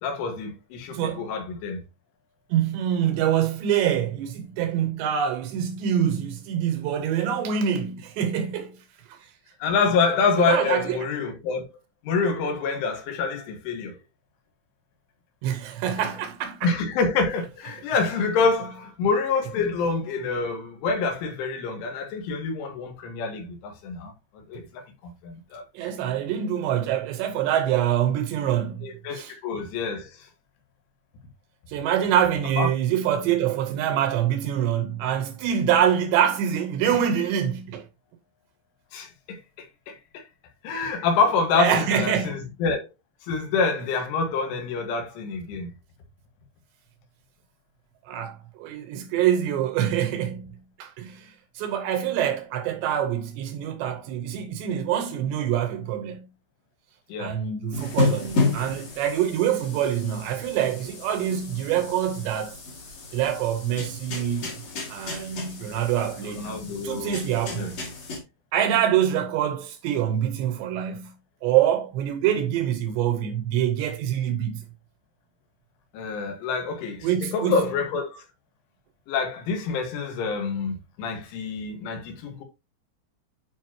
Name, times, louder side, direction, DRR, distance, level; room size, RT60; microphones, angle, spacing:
voice 1, 0.0-1.8 9.6-11.6 12.0-13.9 15.9-16.1 16.6-25.6 28.8-30.3 32.6-32.7 38.9-40.2 40.6-42.9 43.2-45.7 57.1-57.4 66.4-67.2 67.5-67.7 75.9-78.2 79.1-82.4, left 4 dB, 80° left, 4.0 m, -27 dB
voice 2, 0.9-1.3 2.5-8.8 9.1-9.2 10.5-11.0 15.4-16.7 25.7-28.9 29.1-29.3 31.7-37.9 41.5-42.4 48.1-56.3 57.2-62.6 63.1-64.5 64.9-67.8 68.5-71.1 71.4-74.6 77.0-77.6, right 10 dB, 75° right, 2.8 m, -25 dB
sound 1, 57.7-68.2, left 3 dB, 40° left, 2.6 m, -32 dB
9.4 x 5.0 x 2.8 m
omnidirectional pair, 5.5 m